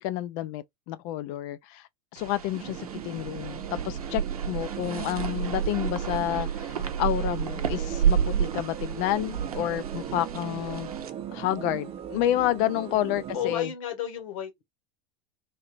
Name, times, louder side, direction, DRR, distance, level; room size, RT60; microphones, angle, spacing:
voice 1, 0.0-1.8 2.1-10.9 11.3-13.7, left 13 dB, 45° left, 0.5 m, -29 dB
sound 1, 2.2-11.1, right 8 dB, 75° right, 0.7 m, -30 dB
sound 2, 2.5-13.6, right 10 dB, 30° right, 0.6 m, -38 dB
voice 2, 13.3-14.6, left 9 dB, 60° left, 1.2 m, -33 dB
3.3 x 2.8 x 2.5 m
figure-of-eight pair, 85°, 19 cm